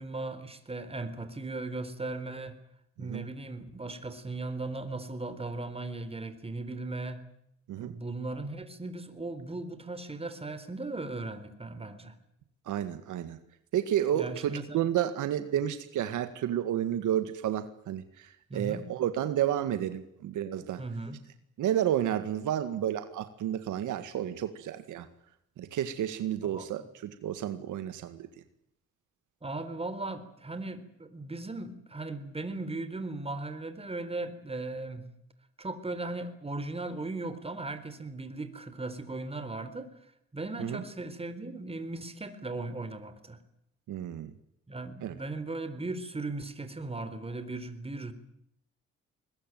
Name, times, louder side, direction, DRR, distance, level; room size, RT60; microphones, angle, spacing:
voice 1, 0.0-2.6 3.0-7.2 7.8-12.1 14.1-14.8 18.5-18.8 20.8-21.2 26.4-26.7 29.4-35.0 35.6-39.9 40.3-43.4 44.7-48.1, right 2 dB, 20° right, 11 dB, 4.1 m, -37 dB
voice 2, 12.7-13.4 13.7-20.8 21.6-25.1 25.6-28.3 40.6-40.8 43.9-44.3 45.0-45.2, right 11 dB, 80° right, 10 dB, 1.9 m, -31 dB
22.0 x 21.0 x 9.3 m, 0.76 s
cardioid pair, 90°, 30 cm